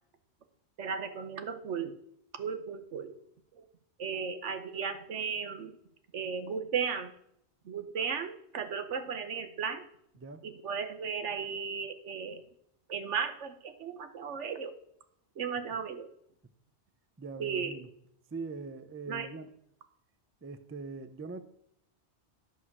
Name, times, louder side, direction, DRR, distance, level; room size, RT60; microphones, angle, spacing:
voice 1, 0.8-2.0 2.3-3.2 3.5-3.6 4.0-5.7 6.1-7.1 7.6-9.9 10.4-12.4 12.9-14.7 15.4-16.1 17.4-17.8 19.1-19.3, right 6 dB, 80° right, 9 dB, 1.2 m, -35 dB
voice 2, 17.2-17.9 18.3-19.5 20.4-21.4, right 4 dB, 20° right, 11 dB, 0.3 m, -42 dB
11.0 x 5.6 x 6.0 m, 0.72 s
omnidirectional pair, 1.2 m